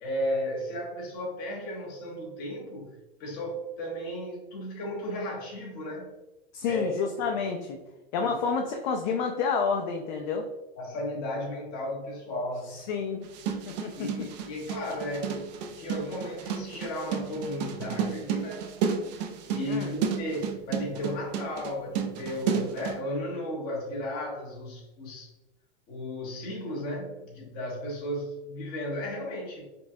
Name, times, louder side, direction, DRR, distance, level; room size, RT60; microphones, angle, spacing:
voice 1, 0.0-6.1 6.6-7.0 8.2-8.4 10.8-12.8 14.0-18.6 19.5-25.3 25.9-29.7, left 1 dB, 30° left, -2 dB, 1.1 m, -34 dB
voice 2, 6.5-7.8 8.1-10.5 12.7-13.2 13.7-14.3 19.7-19.9, left 5 dB, 50° left, 3 dB, 0.4 m, -29 dB
sound 1, 13.2-23.0, right 7 dB, 45° right, 0.5 m, -32 dB
5.2 x 2.3 x 2.6 m, 1.1 s
supercardioid pair, 175°, 30 cm